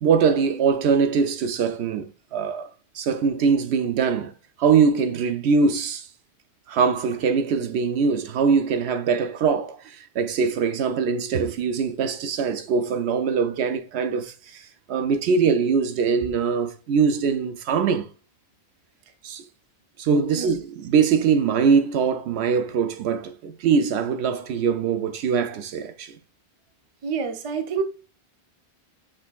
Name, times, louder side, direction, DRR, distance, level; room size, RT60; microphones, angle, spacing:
voice 1, 0.0-2.7 2.9-6.1 6.7-14.6 14.9-18.1 19.2-19.5 20.0-26.2, right 6 dB, 90° right, 0.8 m, -22 dB
voice 2, 20.3-20.6 27.0-27.8, right 6 dB, 40° right, 0.5 m, -28 dB
6.2 x 3.4 x 2.3 m
omnidirectional pair, 1.1 m